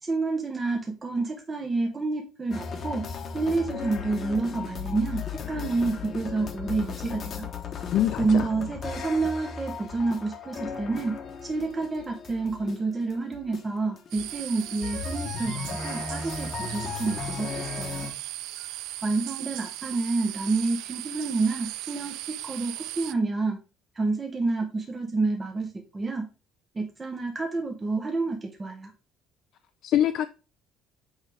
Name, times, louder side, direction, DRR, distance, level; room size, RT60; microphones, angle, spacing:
voice 1, 0.0-3.1 3.3-7.5 8.2-11.2 11.4-18.1 19.0-23.6 23.9-26.3 26.7-28.9, right 3 dB, 15° right, 0.7 m, -29 dB
sound 1, 2.5-18.1, left 6 dB, 35° left, 0.9 m, -36 dB
voice 2, 7.9-8.5 29.8-30.3, left 11 dB, 55° left, 0.3 m, -24 dB
sound 2, 14.1-23.1, right 15 dB, 80° right, 0.3 m, -37 dB
6.4 x 4.8 x 3.3 m
cardioid pair, 155°, 0 cm